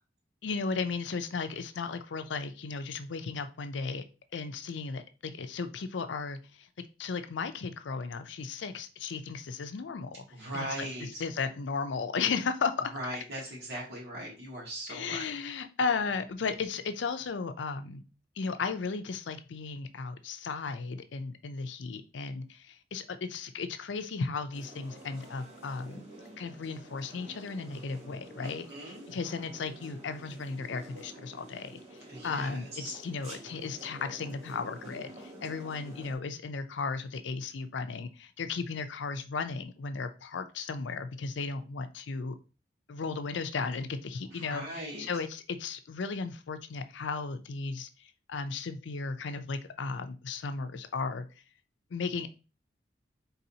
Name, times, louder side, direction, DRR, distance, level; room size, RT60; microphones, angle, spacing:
voice 1, 0.4-4.0 4.3-6.7 7.0-10.3 10.5-12.9 14.9-18.0 18.4-26.0 26.4-31.8 32.2-42.4 42.9-51.3 51.9-52.3, left 4 dB, 90° left, 0.5 m, -35 dB
voice 2, 10.3-11.2 12.9-15.3 28.4-29.0 32.1-32.9 44.3-45.0, right 1 dB, 70° right, 1.8 m, -39 dB
sound 1, 24.5-36.1, right 1 dB, 35° right, 1.2 m, -49 dB
4.0 x 4.0 x 2.8 m
head